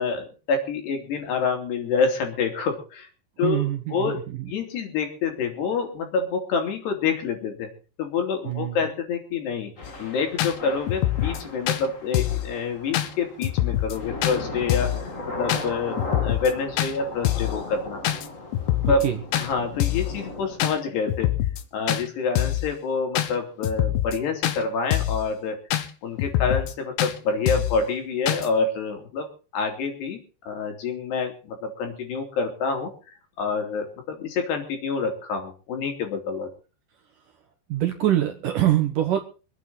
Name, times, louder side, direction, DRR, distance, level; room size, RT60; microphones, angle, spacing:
voice 1, 0.0-3.1 3.4-4.2 4.5-7.7 8.0-9.7 10.0-14.9 15.3-18.0 18.8-19.1 19.3-21.3 21.7-25.6 26.0-30.2 30.5-32.9 33.4-36.5, left 5 dB, 70° left, 3 dB, 4.9 m, -27 dB
voice 2, 3.4-4.4 8.5-8.8 18.9-19.2 37.7-39.2, right 12 dB, 65° right, 5 dB, 2.3 m, -24 dB
sound 1, 9.8-9.9 10.4-10.5 10.9-11.4 11.7-11.8 12.1-12.5 12.9-13.1 13.4-14.0 14.2-14.4 14.7-15.0 15.5-15.6 16.0-16.5 16.8-16.9 17.3-17.6 18.0-18.3 18.5-19.1 19.3-19.5 19.8-20.1 20.6-20.8 21.1-21.6 21.9-22.0 22.4-22.7 23.2-23.3 23.6-24.2 24.4-24.6 24.9-25.2 25.7-25.9 26.2-26.7 27.0-27.1 27.5-27.8 28.3-28.5, left 13 dB, 85° left, 3.5 m, -24 dB
Thunder / Rain, 9.8-20.6, left 2 dB, 40° left, 1.0 m, -37 dB
25.5 x 9.2 x 4.1 m, 0.35 s
omnidirectional pair, 5.1 m